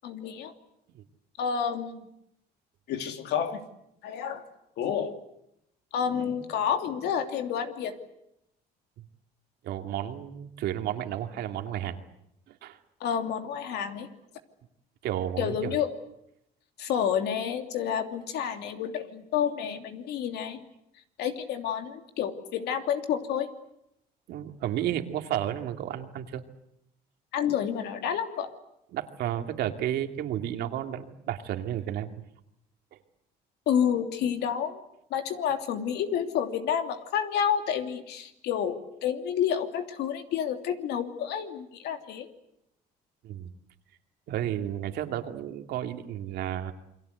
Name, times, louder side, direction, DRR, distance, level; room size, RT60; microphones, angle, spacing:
voice 1, 0.0-0.5 1.4-2.0 2.9-3.6 4.0-4.4 4.8-5.1 5.9-8.0 13.0-14.1 15.4-15.9 16.8-20.6 21.2-23.5 27.3-28.5 33.7-34.8 35.1-42.3, left 8 dB, 75° left, 6 dB, 2.9 m, -29 dB
voice 2, 9.6-12.0 12.5-12.8 15.0-15.8 24.3-26.4 28.9-32.1 43.2-43.5 44.3-46.7, right 11 dB, 80° right, 5 dB, 2.5 m, -32 dB
28.5 x 23.0 x 8.1 m, 0.81 s
cardioid pair, 110°, 17 cm